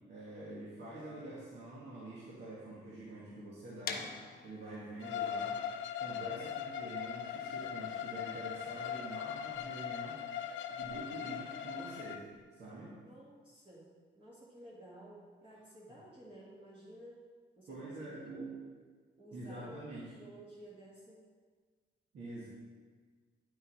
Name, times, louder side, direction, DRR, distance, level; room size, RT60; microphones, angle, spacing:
voice 1, 0.1-5.6 6.0-10.2 10.7-12.3 12.5-12.9 17.7-18.5 19.3-20.1 22.1-22.4, right 2 dB, 60° right, -8 dB, 1.9 m, -46 dB
sound 1, 3.8-9.6, left 5 dB, 50° left, 0.8 m, -47 dB
Bowed string instrument, 5.0-12.2, left 9 dB, 70° left, 0.4 m, -40 dB
voice 2, 13.0-13.9 14.2-17.3 17.6-18.5 19.2-19.8 20.1-21.2, right 1 dB, 25° right, -6 dB, 1.7 m, -54 dB
8.8 x 5.6 x 4.2 m, 1.5 s
cardioid pair, 90°, 20 cm